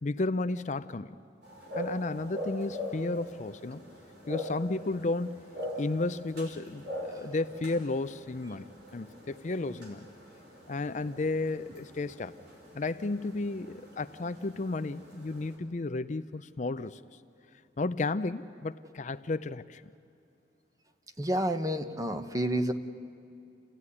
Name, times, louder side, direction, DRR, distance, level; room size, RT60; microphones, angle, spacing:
voice 1, 0.0-1.2 1.7-3.8 4.3-5.4 5.8-10.1 10.7-12.4 12.7-17.0 17.8-19.8, left 2 dB, 45° left, 12 dB, 0.5 m, -33 dB
sound 1, 1.4-15.6, equal, 70° right, 5.9 m, -43 dB
voice 2, 21.2-22.7, right 1 dB, 20° right, 8 dB, 1.0 m, -29 dB
28.5 x 16.0 x 9.8 m, 2.6 s
head